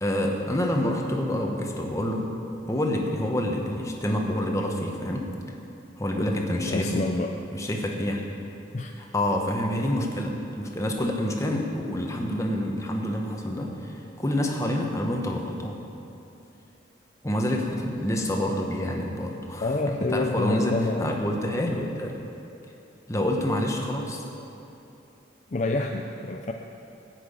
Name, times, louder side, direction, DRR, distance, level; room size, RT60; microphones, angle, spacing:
voice 1, 0.0-2.3 2.7-5.3 6.0-7.0 7.5-8.2 9.0-15.8 17.2-19.7 20.1-22.2 23.1-24.2, left 1 dB, 15° left, 1 dB, 1.2 m, -27 dB
voice 2, 6.7-7.3 8.7-9.0 19.6-21.1 25.5-26.5, left 2 dB, 40° left, 3 dB, 0.5 m, -28 dB
14.0 x 6.1 x 8.5 m, 2.9 s
head